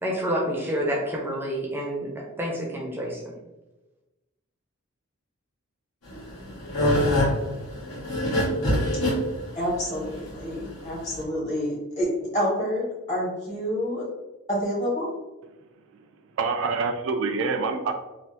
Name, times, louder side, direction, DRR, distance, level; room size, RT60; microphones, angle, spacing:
voice 1, 0.0-3.3, equal, 10° right, -2 dB, 0.5 m, -28 dB
sound 1, 6.1-11.2, left 1 dB, 75° left, 1.3 m, -24 dB
voice 2, 9.5-14.1 14.5-15.1, equal, 30° left, -5 dB, 1.1 m, -28 dB
voice 3, 16.4-17.9, right 4 dB, 65° right, 5 dB, 0.3 m, -26 dB
3.3 x 2.4 x 2.7 m, 1.1 s
head